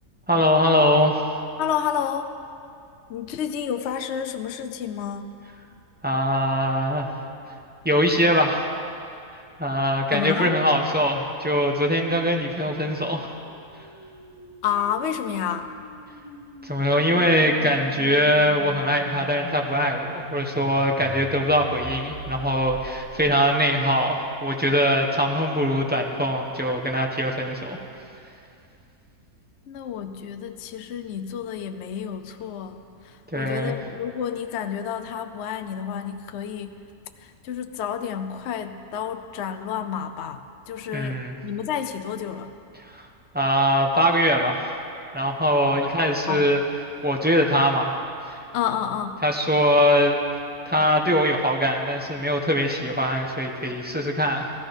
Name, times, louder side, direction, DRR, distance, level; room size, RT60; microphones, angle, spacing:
voice 1, 0.3-1.2 6.0-7.2 7.8-8.6 9.6-13.3 16.6-27.8 33.3-33.8 40.9-41.4 42.9-43.1 43.3-44.7 45.1-46.6 47.0-47.9 49.2-50.2 50.7-54.5, equal, 10° right, 0 dB, 0.9 m, -22 dB
voice 2, 1.6-2.3 3.1-5.2 10.1-10.5 14.6-15.7 29.7-32.8 33.3-36.8 37.4-42.5 46.3-46.5 48.5-49.2, left 8 dB, 60° left, 8 dB, 0.8 m, -30 dB
sound 1, 13.4-23.4, right 1 dB, 75° right, 3.3 m, -41 dB
15.0 x 13.5 x 5.3 m, 2.5 s
omnidirectional pair, 1.6 m